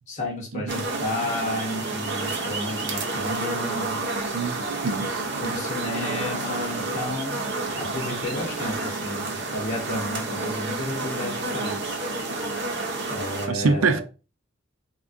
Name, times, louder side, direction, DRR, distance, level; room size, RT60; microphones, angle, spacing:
voice 1, 0.1-4.0 5.4-7.4 7.8-12.0 13.1-14.0, left 1 dB, 35° left, 0.7 m, -32 dB
sound 1, 0.7-13.5, right 3 dB, 60° right, 0.7 m, -30 dB
voice 2, 4.8-5.2 13.5-14.0, right 4 dB, 90° right, 0.4 m, -24 dB
3.5 x 2.3 x 2.5 m
head